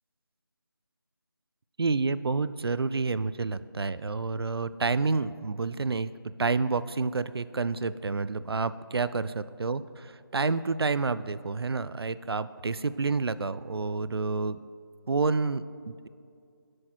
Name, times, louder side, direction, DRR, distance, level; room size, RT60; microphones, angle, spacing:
voice 1, 1.8-6.1 6.4-9.3 9.6-14.6 15.1-16.1, right 4 dB, 85° right, 15 dB, 0.4 m, -29 dB
13.0 x 6.5 x 4.5 m, 2.3 s
figure-of-eight pair, 175°, 13 cm